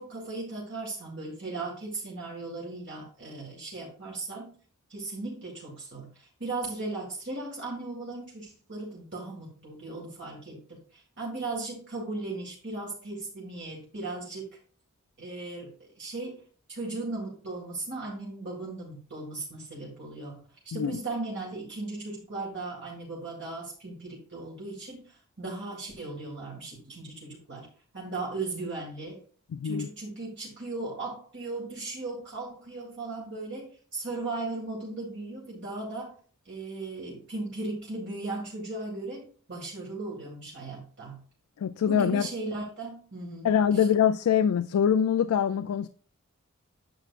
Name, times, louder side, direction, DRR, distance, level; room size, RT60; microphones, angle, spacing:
voice 1, 0.0-4.5 4.9-14.5 15.2-16.4 16.7-20.4 20.7-27.7 27.9-29.2 29.6-36.2 36.5-39.2 39.5-41.2 41.9-43.9, right 2 dB, 55° right, 2.1 m, -37 dB
voice 2, 29.5-29.9 41.6-42.3 43.4-45.9, left 8 dB, 85° left, 0.3 m, -24 dB
9.1 x 6.9 x 2.5 m
head